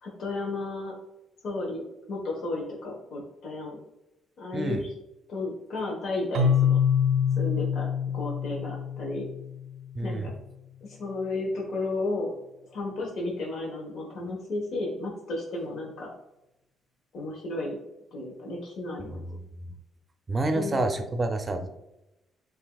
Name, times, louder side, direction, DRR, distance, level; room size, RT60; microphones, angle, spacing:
voice 1, 0.0-1.0 1.4-1.8 2.1-3.8 4.4-4.9 5.3-6.8 7.4-7.9 8.1-9.3 10.0-10.3 10.9-12.3 12.7-16.1 17.1-17.8 18.1-19.2 20.5-20.8, left 2 dB, 65° left, -3 dB, 1.2 m, -33 dB
Keyboard (musical), 6.3-10.0, left 7 dB, 75° right, 0.6 m, -26 dB
voice 2, 10.0-10.3 19.1-19.7 20.3-21.7, right 2 dB, 30° right, 6 dB, 0.6 m, -29 dB
7.4 x 2.7 x 2.3 m, 0.91 s
cardioid pair, 90°, 0 cm